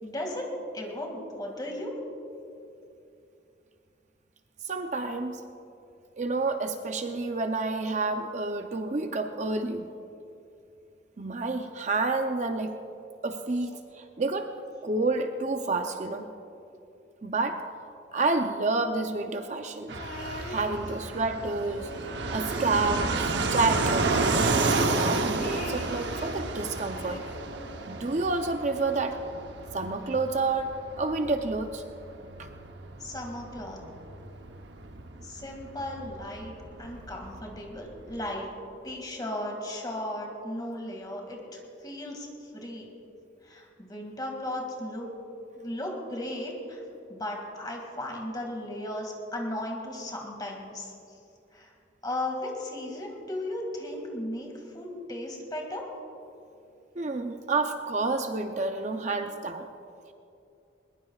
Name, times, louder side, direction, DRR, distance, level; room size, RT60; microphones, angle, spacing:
voice 1, 0.0-1.9 33.0-33.8 35.2-38.5 38.8-41.4 41.8-42.3 42.5-42.9 43.4-45.1 45.5-46.8 47.1-50.9 51.5-51.7 52.0-55.9, left 1 dB, 20° left, 1 dB, 2.2 m, -36 dB
voice 2, 4.6-5.4 6.2-9.9 11.2-12.7 13.2-14.5 14.8-16.3 17.2-17.6 18.1-19.9 20.5-21.9 22.3-24.1 24.6-27.2 27.9-29.2 29.7-31.8 32.4-32.5 57.0-59.7, right 3 dB, 40° right, 6 dB, 0.6 m, -29 dB
Fixed-wing aircraft airplane, 19.9-38.3, right 3 dB, 70° right, 0.9 m, -32 dB
sound 1, 20.0-21.2 21.6-23.5 23.7-23.8 24.1-26.5 26.9-28.2 29.1-29.2, left 2 dB, 45° left, 1.3 m, -43 dB
21.5 x 20.0 x 2.4 m, 2.6 s
head